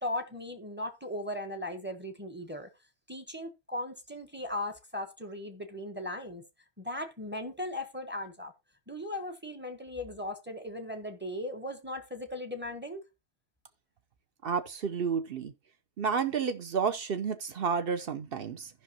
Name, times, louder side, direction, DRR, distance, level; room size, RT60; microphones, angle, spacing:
voice 1, 0.0-2.7 3.1-6.4 6.8-8.5 8.9-13.0, left 1 dB, 10° right, 0.9 m, -37 dB
voice 2, 14.4-15.5 16.0-18.7, right 6 dB, 50° right, 0.7 m, -31 dB
15.0 x 5.7 x 2.9 m
omnidirectional pair, 1.5 m